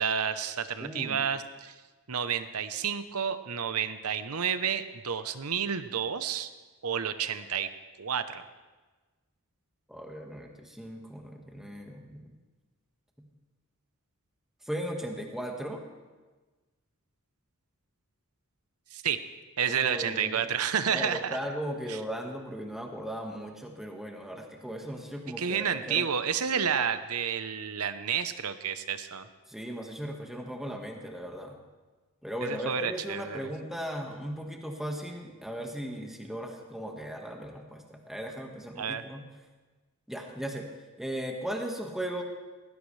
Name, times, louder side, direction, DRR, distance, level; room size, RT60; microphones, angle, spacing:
voice 1, 0.0-1.7 2.1-6.5 6.8-7.7 8.0-8.5 18.9-19.2 19.6-21.4 21.9-22.0 25.4-29.3 32.4-33.4 38.8-39.0, right 7 dB, 80° right, 11 dB, 0.9 m, -30 dB
voice 2, 0.8-1.2 9.9-12.3 14.6-15.8 19.7-20.5 20.9-26.0 29.5-31.6 32.2-39.2 40.1-40.7 41.0-42.2, equal, ahead, 1 dB, 1.6 m, -37 dB
18.5 x 16.0 x 3.3 m, 1.3 s
head